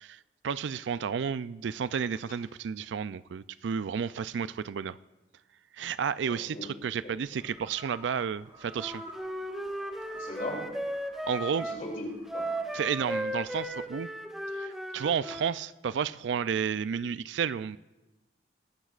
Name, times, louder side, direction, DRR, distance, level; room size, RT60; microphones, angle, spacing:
voice 1, 0.0-5.0 5.7-9.0 11.3-11.7 12.7-14.1 14.5-17.8, right 7 dB, 80° right, 16 dB, 0.4 m, -32 dB
voice 2, 6.3-6.7 7.0-7.1 10.1-10.8 11.6-12.5, left 1 dB, 45° left, -1 dB, 3.0 m, -38 dB
sound 1, 7.0-13.9, right 1 dB, 25° right, 4.9 m, -52 dB
Wind instrument woodwind instrument, 8.7-11.8 12.3-15.5, right 1 dB, ahead, 0.7 m, -36 dB
21.5 x 12.5 x 2.4 m, 1.1 s
head